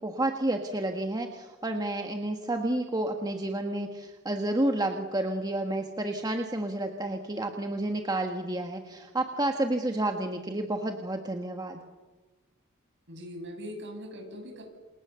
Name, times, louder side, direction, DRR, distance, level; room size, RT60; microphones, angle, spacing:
voice 1, 0.0-11.8, right 1 dB, 20° right, 3 dB, 1.7 m, -30 dB
voice 2, 13.1-14.6, equal, 55° right, 4 dB, 7.3 m, -41 dB
29.0 x 28.5 x 7.1 m, 1.3 s
head